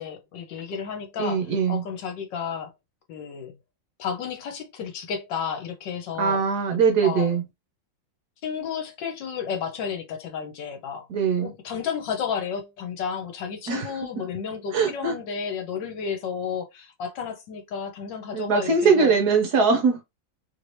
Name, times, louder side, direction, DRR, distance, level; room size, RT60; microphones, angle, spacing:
voice 1, 0.0-1.4 1.7-2.7 3.1-3.6 4.0-6.4 7.0-7.3 8.4-11.1 11.4-19.1, left 7 dB, 70° left, 1.4 m, -32 dB
voice 2, 1.2-1.8 6.2-7.4 11.1-11.5 13.7-13.9 14.7-15.1 18.3-20.0, right 5 dB, 65° right, 1.1 m, -21 dB
3.2 x 2.7 x 3.1 m
omnidirectional pair, 2.1 m